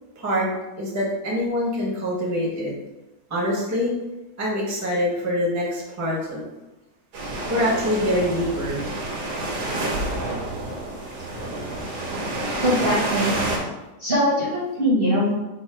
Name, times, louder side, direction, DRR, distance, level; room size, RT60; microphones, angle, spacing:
voice 1, 0.2-0.5 0.8-2.7 3.3-3.9 4.4-6.4 7.5-8.8, left 1 dB, 15° right, -4 dB, 0.7 m, -24 dB
sound 1, 7.1-13.6, right 2 dB, 80° right, 1.4 m, -28 dB
voice 2, 12.6-13.4 14.0-15.3, equal, 45° right, -6 dB, 0.9 m, -21 dB
3.9 x 2.2 x 4.3 m, 1.0 s
omnidirectional pair, 1.7 m